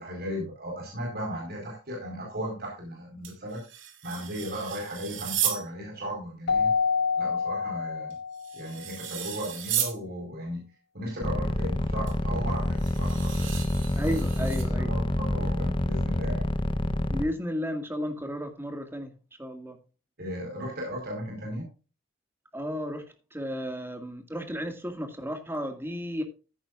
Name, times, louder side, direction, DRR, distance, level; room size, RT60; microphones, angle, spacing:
voice 1, 0.0-3.6 4.0-6.7 7.2-8.1 8.5-10.6 10.9-13.7 14.1-14.2 14.8-16.5 20.2-21.7, equal, 50° right, 0 dB, 4.5 m, -36 dB
sound 1, 3.2-5.6 8.1-10.0 12.1-12.2 12.8-14.6, right 9 dB, 65° right, 3.0 m, -34 dB
Keyboard (musical), 6.5-8.7, left 5 dB, 55° left, 0.7 m, -27 dB
sound 2, 11.2-17.3, left 1 dB, 25° left, 0.8 m, -27 dB
voice 2, 14.0-14.9 17.1-19.1 19.4-19.8 22.5-23.0 23.3-26.2, equal, 10° right, 6 dB, 2.0 m, -33 dB
14.5 x 10.5 x 2.5 m, 0.33 s
head